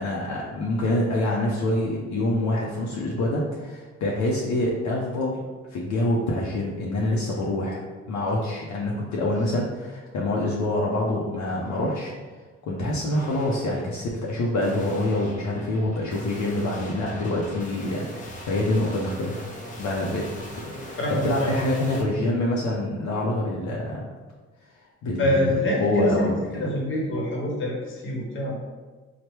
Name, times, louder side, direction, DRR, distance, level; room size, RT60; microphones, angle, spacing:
voice 1, 0.0-12.1 12.7-19.5 19.8-20.2 20.6-21.0 21.2-24.0 25.0-26.7, left 1 dB, 70° left, -4 dB, 0.6 m, -26 dB
sound 1, 8.3-8.5 8.9-9.6 10.1-10.5 11.6-12.2 13.1-22.0, equal, 25° left, 0.6 m, -40 dB
voice 2, 21.0-21.5 25.2-26.3 26.6-28.6, left 1 dB, 40° left, -2 dB, 0.9 m, -25 dB
3.2 x 2.1 x 3.0 m, 1.3 s
cardioid pair, 90°, 30 cm